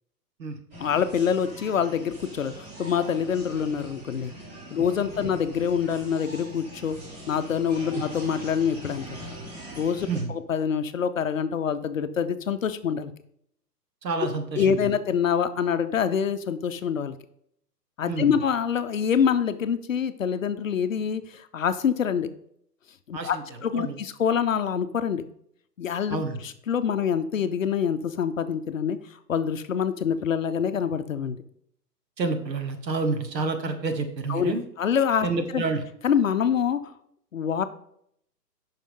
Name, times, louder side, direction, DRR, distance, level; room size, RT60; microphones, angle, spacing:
sound 1, 0.7-10.2, right 1 dB, 30° right, 3.4 m, -42 dB
voice 1, 0.8-4.3 4.7-7.0 7.3-9.1 9.7-13.1 14.6-17.1 18.0-22.3 23.1-25.2 25.8-29.0 29.3-31.4 34.3-35.3 35.5-35.6 36.0-36.8 37.3-37.6, left 7 dB, 55° left, 10 dB, 0.6 m, -26 dB
voice 2, 14.0-14.9 18.0-18.4 23.1-23.4 23.7-24.0 26.1-26.4 32.2-34.6 35.2-35.8, right 4 dB, 85° right, 7 dB, 1.6 m, -29 dB
9.2 x 5.7 x 3.7 m, 0.70 s
hypercardioid pair, 175°, 50 cm